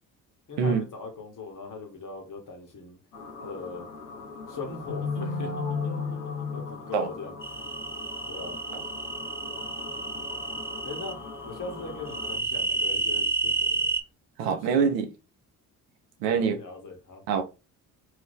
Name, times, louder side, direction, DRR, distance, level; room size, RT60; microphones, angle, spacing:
voice 1, 0.5-3.0 3.4-3.9 4.5-5.5 6.5-7.4 8.3-8.6 10.8-13.9 14.5-14.6 16.3-17.2, left 3 dB, 45° left, 1.3 m, -40 dB
sound 1, 3.1-12.4, left 4 dB, 90° left, 0.6 m, -37 dB
sound 2, 7.4-11.1 12.1-14.0, right 3 dB, 5° right, 0.3 m, -30 dB
voice 2, 14.4-15.1 16.2-16.6 17.3-17.4, right 6 dB, 75° right, 0.7 m, -24 dB
2.8 x 2.7 x 3.5 m
hypercardioid pair, 45°, 45 cm